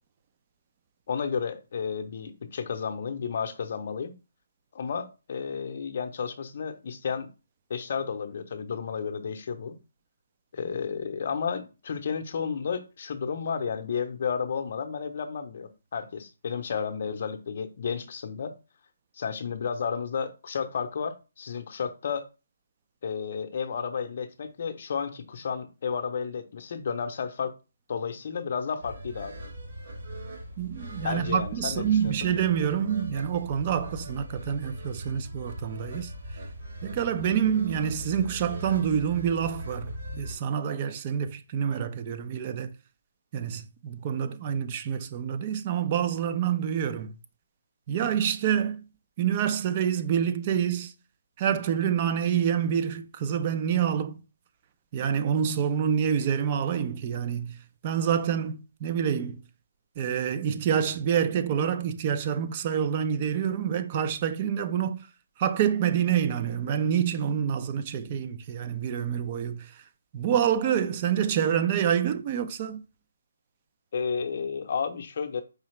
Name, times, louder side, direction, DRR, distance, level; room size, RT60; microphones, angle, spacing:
voice 1, 1.1-4.1 4.7-7.3 7.7-9.7 10.5-18.6 19.2-22.3 23.0-27.5 27.9-29.3 31.0-32.1 73.9-75.4, left 6 dB, 50° left, 0.7 m, -32 dB
sound 1, 28.8-40.4, equal, 55° right, 1.9 m, -40 dB
voice 2, 30.6-36.1 36.8-42.7 43.3-47.2 47.9-48.8 49.2-50.9 51.4-54.2 54.9-57.6 57.8-59.4 60.0-65.0 65.4-69.7 70.1-72.8, right 8 dB, 30° right, 0.4 m, -27 dB
4.8 x 2.8 x 3.2 m
figure-of-eight pair, 150°, 0 cm